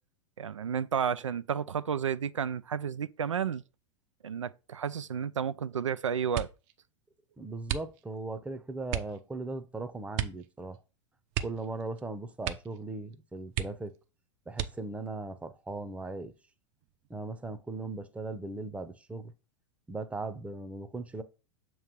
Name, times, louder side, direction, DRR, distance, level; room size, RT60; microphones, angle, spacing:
voice 1, 0.4-3.6 4.2-6.5, right 7 dB, 90° right, 0.4 m, -32 dB
sound 1, 6.3-6.7 7.6-8.3 8.9-9.2 10.1-10.5 10.7-10.8 11.3-12.0 12.4-12.8 13.1-13.2 13.5-14.0 14.5-15.1 15.8-16.4 16.8-17.2, right 11 dB, 45° right, 0.7 m, -35 dB
voice 2, 7.4-10.8 11.4-13.9 14.5-16.3 17.1-19.3 19.9-21.2, right 3 dB, 10° right, 0.7 m, -38 dB
7.1 x 3.1 x 5.1 m
hypercardioid pair, 95°, 16 cm